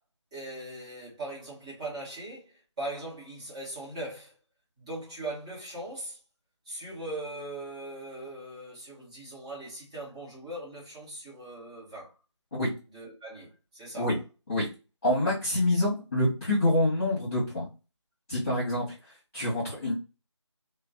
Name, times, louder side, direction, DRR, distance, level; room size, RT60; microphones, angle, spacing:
voice 1, 0.3-4.4 4.8-6.2 6.7-12.1 12.9-14.2, right 1 dB, 15° right, 1.1 m, -40 dB
voice 2, 15.0-17.7 18.3-18.9 19.3-19.9, left 1 dB, 30° left, 1.4 m, -26 dB
3.2 x 2.1 x 2.7 m
figure-of-eight pair, 165°, 16 cm